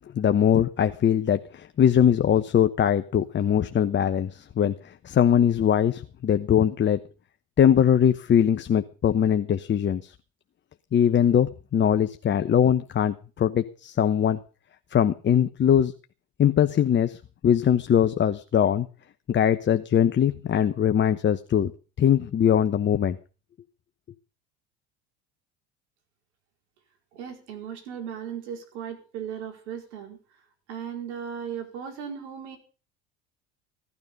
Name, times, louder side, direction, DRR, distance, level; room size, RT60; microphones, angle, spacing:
voice 1, 0.1-7.0 7.6-10.1 10.9-14.4 14.9-15.9 16.4-17.2 17.4-18.9 19.3-21.7 22.0-23.2, left 9 dB, 35° left, 10 dB, 1.0 m, -21 dB
voice 2, 27.1-30.2 30.7-32.6, right 8 dB, 80° right, 5 dB, 4.6 m, -36 dB
16.5 x 12.0 x 5.4 m, 0.36 s
hypercardioid pair, 80°, 33 cm